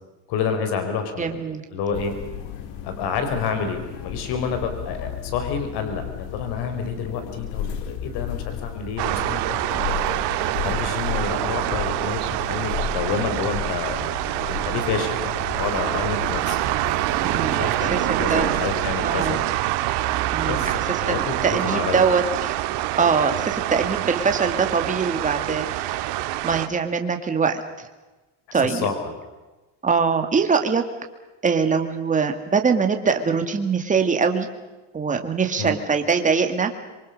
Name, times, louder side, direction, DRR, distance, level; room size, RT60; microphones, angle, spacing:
voice 1, 0.3-1.4 1.7-2.1 2.8-10.0 10.6-14.1 14.6-16.6 17.4-19.4 20.4-22.1 28.5-29.2 35.6-35.7, left 6 dB, 65° left, 7 dB, 4.6 m, -29 dB
voice 2, 1.2-1.6 17.2-18.0 18.3-18.5 19.0-19.4 20.3-20.8 21.1-22.6 23.0-26.1 26.4-27.6 28.5-28.9 29.8-30.8 31.4-34.5 34.9-36.7, right 5 dB, 15° right, 5 dB, 2.2 m, -22 dB
sound 1, 1.9-18.8, left 9 dB, 80° left, 2.7 m, -34 dB
sound 2, 9.0-26.7, right 15 dB, 70° right, 1.8 m, -25 dB
27.0 x 23.5 x 6.6 m, 1.1 s
cardioid pair, 150°, 43 cm